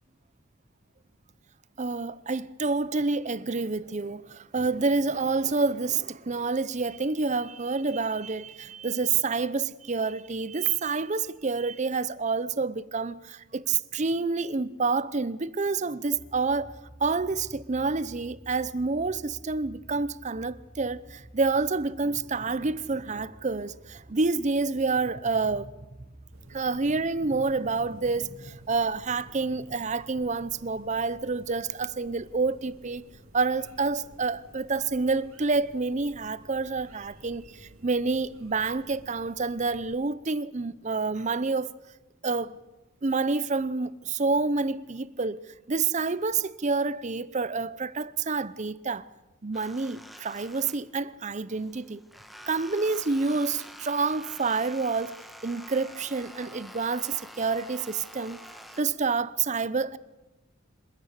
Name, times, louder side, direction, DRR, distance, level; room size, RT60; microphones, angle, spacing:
voice 1, 1.8-16.7 17.0-25.8 26.5-33.1 33.3-41.7 42.2-42.6 43.0-45.4 45.7-49.1 49.4-52.0 52.5-55.2 55.4-58.4 58.8-60.0, right 4 dB, 35° right, 0.7 m, -28 dB
sound 1, 16.1-26.4, equal, 45° left, 6.1 m, -51 dB
sound 2, 26.3-40.0, right 1 dB, 80° right, 2.8 m, -53 dB
sound 3, 49.5-51.2 51.5-58.8, equal, ahead, 1.5 m, -47 dB
26.5 x 15.0 x 8.2 m
head